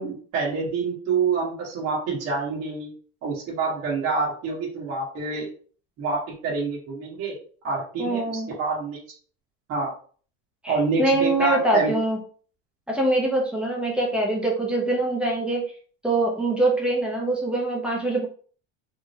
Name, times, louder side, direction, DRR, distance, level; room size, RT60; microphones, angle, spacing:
voice 1, 0.0-2.9 3.2-5.5 6.0-7.3 7.6-9.0 9.7-9.9 10.7-11.9, right 4 dB, 45° right, -5 dB, 1.2 m, -27 dB
voice 2, 8.0-8.5 10.6-12.2 12.9-15.7 16.0-18.3, right 2 dB, 5° right, -3 dB, 0.4 m, -24 dB
3.6 x 2.1 x 2.7 m, 0.43 s
cardioid pair, 165°, 36 cm